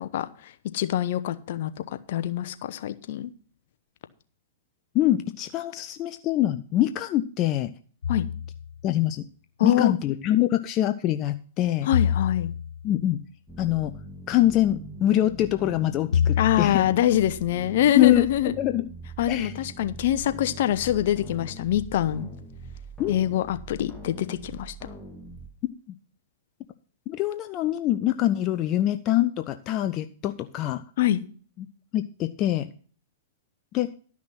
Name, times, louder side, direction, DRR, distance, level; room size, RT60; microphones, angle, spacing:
voice 1, 0.0-3.3 8.1-8.3 9.6-9.9 11.8-12.5 16.4-18.5 19.2-22.3 23.1-24.7 31.0-31.2, left 12 dB, 60° left, 11 dB, 0.9 m, -25 dB
voice 2, 4.9-7.7 8.8-9.2 9.6-11.9 12.8-13.2 13.6-13.9 14.3-16.8 17.9-18.2 18.6-18.9 19.3-19.5 23.0-23.2 27.1-30.8 31.6-31.7 31.9-32.7 33.7-33.9, left 13 dB, 35° left, 9 dB, 0.7 m, -24 dB
sound 1, 8.0-8.8 11.9-13.0 16.1-17.0, left 8 dB, 85° left, 0.4 m, -26 dB
sound 2, 13.5-25.5, right 2 dB, 10° left, 2.5 m, -42 dB
12.5 x 6.0 x 5.8 m, 0.42 s
hypercardioid pair, 115°, 0 cm